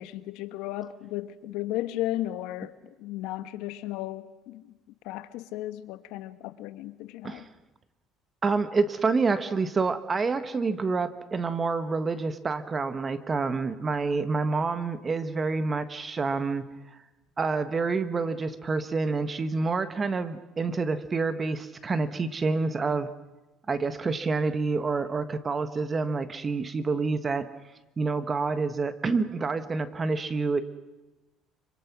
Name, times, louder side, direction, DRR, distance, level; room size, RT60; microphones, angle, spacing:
voice 1, 0.0-4.7 5.0-7.5, left 15 dB, 80° left, 1.2 m, -35 dB
voice 2, 8.4-16.7 17.4-23.1 23.7-27.5 28.0-30.6, right 4 dB, 25° right, 1.4 m, -28 dB
25.0 x 24.5 x 6.1 m
cardioid pair, 120°, 0 cm